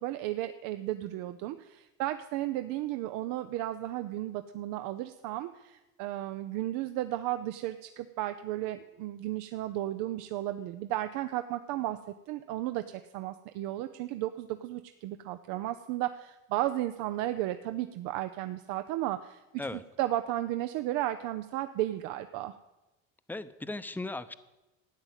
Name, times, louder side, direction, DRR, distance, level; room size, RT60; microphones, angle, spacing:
voice 1, 0.0-12.0 12.3-22.5, right 14 dB, 75° right, 10 dB, 0.8 m, -34 dB
voice 2, 23.3-24.3, left 2 dB, 5° left, 12 dB, 0.7 m, -37 dB
13.0 x 9.3 x 8.2 m, 1.0 s
supercardioid pair, 105°, 33 cm